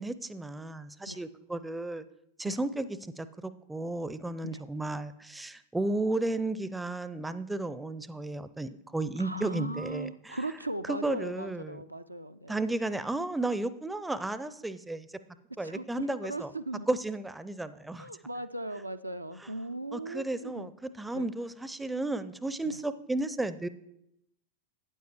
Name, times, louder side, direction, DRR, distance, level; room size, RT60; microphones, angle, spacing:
voice 1, 0.0-2.0 2.4-10.4 10.9-11.8 12.5-15.1 15.6-16.5 16.9-18.1 19.9-23.7, right 2 dB, 5° right, 14 dB, 0.4 m, -33 dB
voice 2, 9.2-12.6 15.6-16.9 18.0-20.7 21.1-21.3 22.6-22.8, right 1 dB, 85° right, 9 dB, 0.3 m, -38 dB
12.5 x 9.2 x 3.0 m, 0.80 s
figure-of-eight pair, 90°, 0 cm